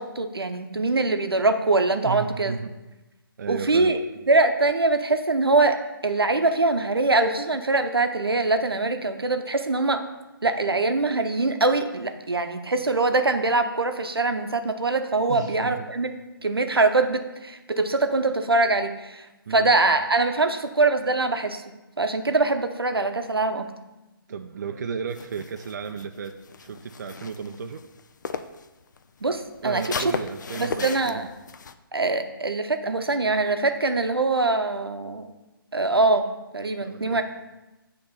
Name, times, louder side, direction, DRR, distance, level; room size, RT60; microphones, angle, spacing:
voice 1, 0.0-2.5 3.5-4.0 4.3-5.8 6.0-10.0 10.4-16.1 16.4-21.6 22.0-23.7 29.2-29.8 30.6-31.3 31.9-35.3 35.7-36.3 36.5-37.2, right 3 dB, 80° right, 7 dB, 0.7 m, -23 dB
voice 2, 2.0-2.7 3.4-4.0 15.3-15.9 19.5-19.7 24.3-26.3 26.6-27.8 29.6-31.3 36.8-37.2, right 6 dB, 50° right, 6 dB, 0.4 m, -33 dB
sound 1, 25.1-28.7 29.0-31.7, left 5 dB, 50° left, 0.4 m, -35 dB
8.0 x 3.0 x 5.5 m, 1.0 s
figure-of-eight pair, 140°, 12 cm